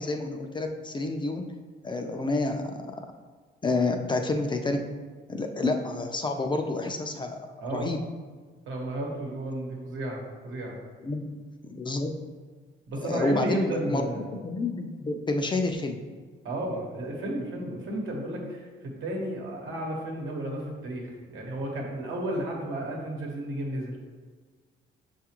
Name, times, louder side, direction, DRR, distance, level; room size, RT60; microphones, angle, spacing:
voice 1, 0.0-1.5 1.8-2.8 3.6-4.8 5.3-7.4 7.7-8.0 11.0-11.3 11.7-12.1 13.1-14.1 14.4-16.0, left 2 dB, 25° left, 4 dB, 0.3 m, -28 dB
voice 2, 8.7-10.8 12.9-14.3 16.4-24.0, right 1 dB, 75° right, -1 dB, 1.0 m, -33 dB
5.7 x 2.4 x 2.9 m, 1.4 s
cardioid pair, 90°, 20 cm